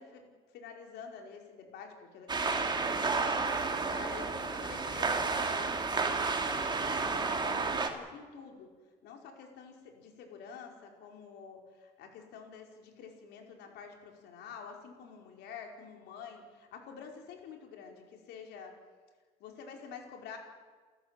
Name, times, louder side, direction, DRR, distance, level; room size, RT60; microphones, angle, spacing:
voice 1, 0.0-3.3 3.8-8.7 9.0-18.7 19.4-20.4, left 6 dB, 80° left, 2 dB, 4.8 m, -48 dB
sound 1, 2.3-7.9, right 4 dB, 25° right, 2.8 m, -31 dB
29.5 x 13.5 x 9.0 m, 1.5 s
cardioid pair, 110°, 17 cm